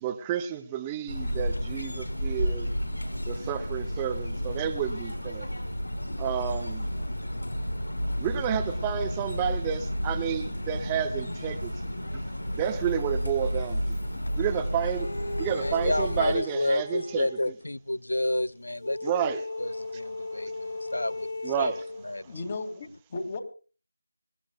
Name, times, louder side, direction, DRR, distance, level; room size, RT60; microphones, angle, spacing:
voice 1, 0.0-2.7 3.3-5.5 6.2-6.9 8.2-11.9 12.5-14.0 14.4-15.1 15.4-17.3 19.0-19.4 20.2-20.6 21.4-21.8, right 9 dB, 10° right, 0.6 m, -31 dB
sound 1, 1.1-16.4, equal, 85° left, 5.1 m, -32 dB
sound 2, 15.0-17.6 18.8-22.1, left 2 dB, 55° left, 2.4 m, -36 dB
voice 2, 15.6-19.1 19.6-21.3 21.6-21.7 22.0-22.4, left 1 dB, 70° left, 0.6 m, -30 dB
voice 3, 22.3-23.4, left 3 dB, 25° left, 2.1 m, -35 dB
26.0 x 14.0 x 2.3 m
figure-of-eight pair, 170°, 0 cm